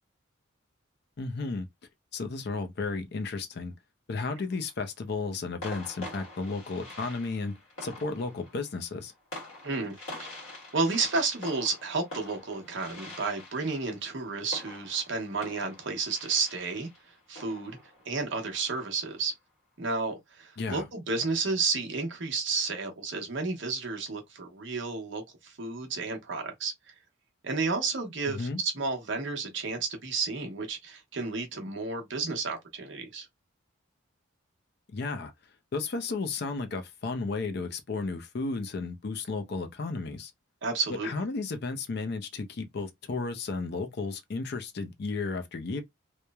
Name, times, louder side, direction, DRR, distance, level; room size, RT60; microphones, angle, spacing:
voice 1, 1.2-1.7 2.1-3.7 4.1-9.1 20.6-20.8 28.3-28.6 34.9-35.3 35.7-40.3 41.0-45.8, left 3 dB, 50° left, 0.4 m, -33 dB
sound 1, 4.3-4.7 5.6-19.0, left 1 dB, 80° left, 1.3 m, -46 dB
voice 2, 9.6-10.0 10.7-16.9 17.3-17.8 18.1-19.3 19.8-26.7 27.4-33.3 40.6-41.1, right 4 dB, 60° right, 0.8 m, -31 dB
3.0 x 2.0 x 2.2 m
head